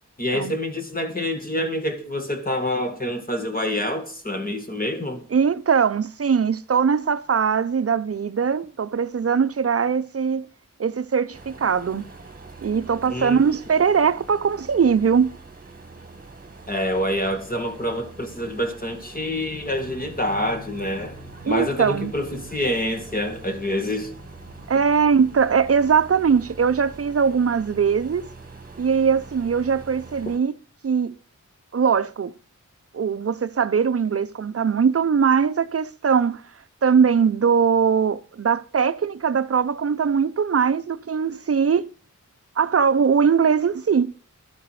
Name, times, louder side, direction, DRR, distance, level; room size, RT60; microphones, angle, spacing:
voice 1, 0.2-5.3 13.1-13.4 16.7-21.1 21.4-24.1, left 1 dB, 30° left, 2.2 m, -27 dB
voice 2, 5.3-10.5 10.8-12.0 12.6-15.3 21.4-22.1 24.7-28.3 28.8-30.5 30.8-31.1 31.7-32.3 32.9-36.4 36.8-41.9 42.6-44.1, right 6 dB, 50° right, 0.6 m, -21 dB
sound 1, 11.3-30.4, right 3 dB, 30° right, 1.8 m, -44 dB
Drum, 19.5-26.0, left 2 dB, 50° left, 2.0 m, -46 dB
12.5 x 10.0 x 4.8 m
wide cardioid pair, 110°, 30 cm